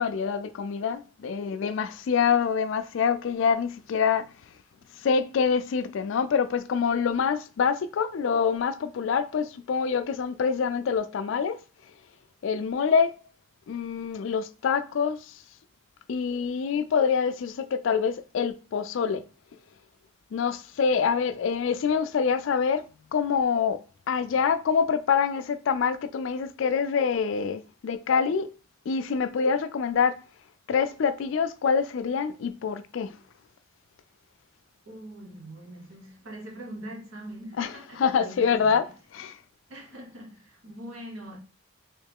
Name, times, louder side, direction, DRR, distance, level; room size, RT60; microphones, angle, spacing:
voice 1, 0.0-4.3 4.9-11.6 12.4-13.2 13.7-15.4 16.1-19.2 20.3-22.8 23.1-23.8 24.1-28.5 28.9-30.2 30.7-33.1 37.6-37.7 38.0-38.8 39.1-39.4, left 6 dB, 65° left, 0.3 m, -26 dB
voice 2, 34.9-38.7 39.7-41.4, right 1 dB, 75° right, 1.1 m, -42 dB
3.2 x 3.0 x 3.4 m
head